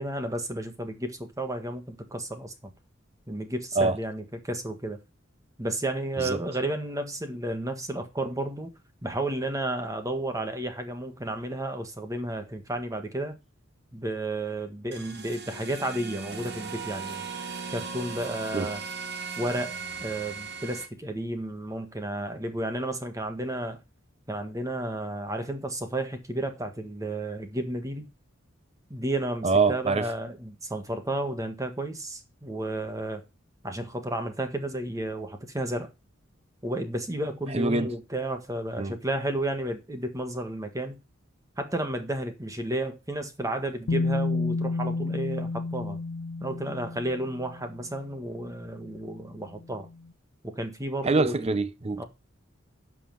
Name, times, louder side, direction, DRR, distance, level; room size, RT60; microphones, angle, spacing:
voice 1, 0.0-2.7 3.3-5.0 5.6-8.7 9.0-13.4 13.9-17.2 17.7-18.8 19.4-23.8 24.3-28.1 28.9-33.2 33.6-35.9 36.6-41.0 41.6-46.0 46.4-49.9 50.4-51.6 52.0-52.1, right 1 dB, 15° right, 1.6 m, -32 dB
sound 1, 14.9-20.9, right 5 dB, 60° right, 2.1 m, -38 dB
voice 2, 29.4-30.1 37.5-37.9 38.8-38.9 51.1-52.0, right 3 dB, 35° right, 0.7 m, -24 dB
Bass guitar, 43.9-47.8 48.9-49.0, left 3 dB, 85° left, 0.5 m, -30 dB
11.0 x 5.7 x 5.4 m
head